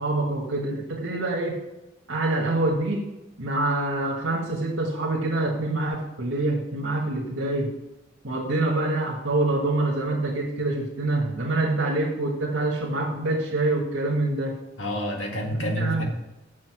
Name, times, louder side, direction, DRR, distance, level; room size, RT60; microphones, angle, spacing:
voice 1, 0.0-1.6 2.1-3.1 3.4-7.7 8.2-14.6 15.5-16.0, right 2 dB, 90° right, -3 dB, 1.5 m, -26 dB
voice 2, 14.8-16.0, equal, 70° left, 1 dB, 2.0 m, -28 dB
7.1 x 6.5 x 6.0 m, 0.97 s
head